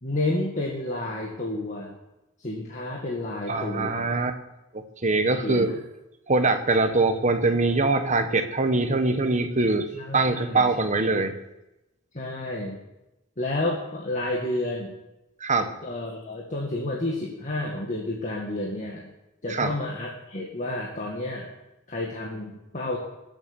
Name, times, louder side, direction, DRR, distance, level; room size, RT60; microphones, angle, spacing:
voice 1, 0.0-1.9 2.4-4.0 5.4-5.7 9.9-10.7 12.1-12.8 13.4-14.9 15.8-19.1 19.4-21.5 21.9-23.0, left 2 dB, 35° left, -2 dB, 2.0 m, -30 dB
voice 2, 3.5-4.4 4.7-5.7 6.3-9.9 10.1-11.3 15.4-15.7 19.5-19.7, right 3 dB, 35° right, 8 dB, 1.2 m, -23 dB
19.5 x 8.2 x 6.9 m, 0.94 s
head